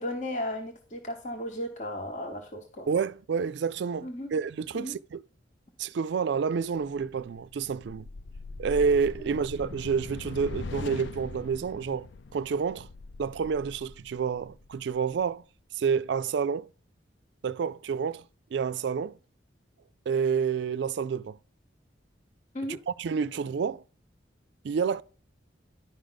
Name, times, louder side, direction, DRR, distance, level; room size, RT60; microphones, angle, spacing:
voice 1, 0.0-2.9 4.0-4.3 4.7-4.9 22.5-22.8, left 1 dB, 40° left, 1.0 m, -35 dB
voice 2, 2.9-5.2 5.8-8.1 8.6-12.9 13.2-15.4 15.8-16.7 17.4-18.2 18.5-19.2 20.1-21.4 22.9-23.8 24.6-25.0, right 6 dB, 65° right, 0.3 m, -29 dB
sound 1, 6.8-15.2, left 3 dB, 70° left, 0.4 m, -42 dB
11.0 x 5.0 x 3.9 m
head